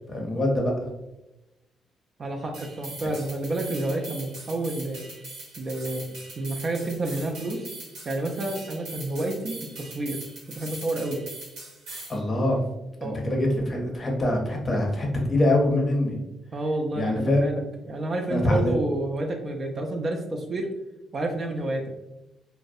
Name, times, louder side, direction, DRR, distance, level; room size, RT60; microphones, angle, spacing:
voice 1, 0.1-0.7 12.1-12.6 13.0-16.2 16.9-17.4 18.3-18.7, left 1 dB, 30° left, 0 dB, 0.6 m, -24 dB
voice 2, 2.2-5.0 5.6-6.1 6.4-7.7 8.1-10.2 10.5-11.2 13.0-13.2 16.5-17.6 17.9-20.7 21.1-21.9, right 2 dB, 40° right, 2 dB, 0.4 m, -29 dB
sound 1, 2.5-12.2, right 2 dB, 85° right, 1.0 m, -41 dB
2.5 x 2.0 x 2.3 m, 0.96 s
cardioid pair, 90°, 0 cm